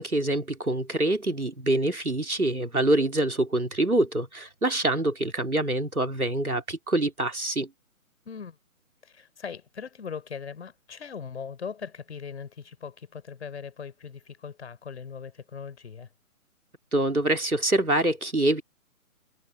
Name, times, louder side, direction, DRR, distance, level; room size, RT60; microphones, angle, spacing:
voice 1, 0.0-7.7 16.9-18.6, right 1 dB, 90° right, 3.5 m, -25 dB
voice 2, 8.2-8.6 9.0-16.1, left 6 dB, 50° left, 4.8 m, -40 dB
figure-of-eight pair, 140°, 43 cm